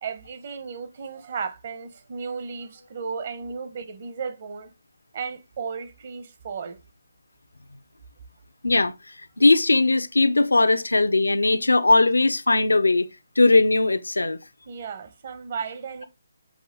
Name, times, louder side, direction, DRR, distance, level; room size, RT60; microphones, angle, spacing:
voice 1, 0.0-4.7 5.1-6.8 14.7-16.1, right 5 dB, 50° right, 1.1 m, -34 dB
voice 2, 8.6-13.1 13.4-14.4, left 2 dB, 80° left, 0.7 m, -19 dB
6.3 x 4.9 x 3.7 m
figure-of-eight pair, 145°, 0 cm